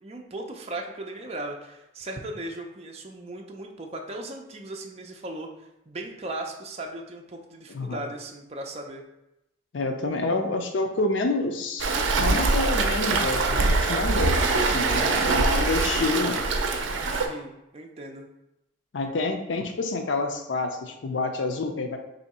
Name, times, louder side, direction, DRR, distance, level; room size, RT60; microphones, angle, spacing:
voice 1, 0.0-5.5 5.9-9.0 17.2-18.3, right 1 dB, 35° right, 2 dB, 0.5 m, -37 dB
voice 2, 7.7-8.0 9.7-11.9 12.2-16.4 18.9-22.0, left 3 dB, 75° left, 5 dB, 0.5 m, -28 dB
Waves surf, 11.8-17.3, right 3 dB, 85° right, 0.5 m, -23 dB
3.4 x 2.7 x 4.1 m, 0.88 s
head